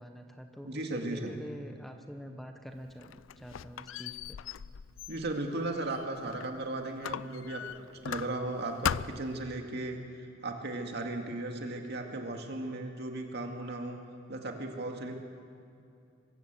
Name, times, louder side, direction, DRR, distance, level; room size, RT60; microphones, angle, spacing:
voice 1, 0.0-4.4, equal, ahead, 5 dB, 0.9 m, -45 dB
voice 2, 0.6-1.3 5.1-7.6 8.0-14.0 14.3-15.1, right 2 dB, 60° right, 3 dB, 2.1 m, -36 dB
Squeak, 2.8-6.6 7.0-8.5 8.8-9.4, left 8 dB, 85° left, 0.4 m, -38 dB
23.0 x 14.0 x 8.2 m, 2.5 s
head